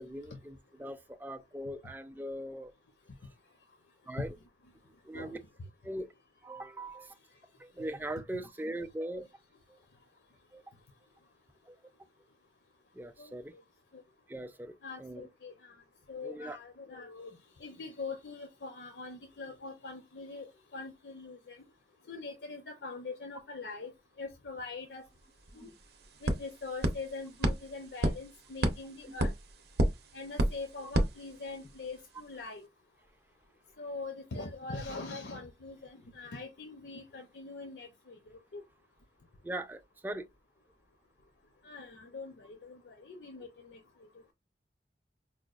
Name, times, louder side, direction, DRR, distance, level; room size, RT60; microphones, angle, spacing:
voice 1, 0.0-2.7 4.1-4.4 5.0-5.4 5.8-6.1 6.4-7.1 7.6-9.3 9.7-9.8 10.5-10.6 11.7-11.8 12.9-13.5 14.3-15.3 16.2-16.6 25.5-25.7 29.1-29.2 39.4-40.3, right 1 dB, 10° right, 0.3 m, -40 dB
voice 2, 13.2-13.6 13.9-14.0 14.8-21.6 22.1-25.0 25.5-25.7 26.2-29.3 30.1-32.7 33.8-38.6 41.6-43.8, left 3 dB, 75° left, 0.6 m, -43 dB
sound 1, 25.1-25.2 25.5-31.9, right 1 dB, 65° right, 0.6 m, -33 dB
4.9 x 2.2 x 2.3 m
head